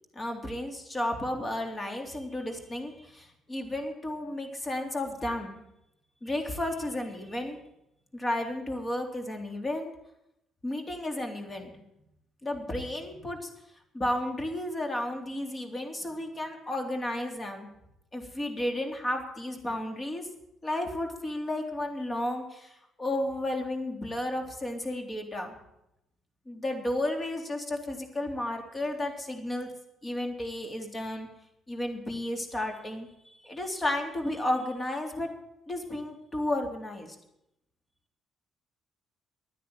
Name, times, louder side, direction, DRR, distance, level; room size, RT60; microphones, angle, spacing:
voice 1, 0.2-5.6 6.2-7.6 8.1-9.9 10.6-11.7 12.4-13.5 13.9-17.7 18.1-20.3 20.6-25.5 26.5-29.7 30.0-31.3 31.7-35.3 35.7-37.2, left 1 dB, 30° left, 3 dB, 3.5 m, -33 dB
11.5 x 10.0 x 9.1 m, 0.85 s
supercardioid pair, 55°, 0 cm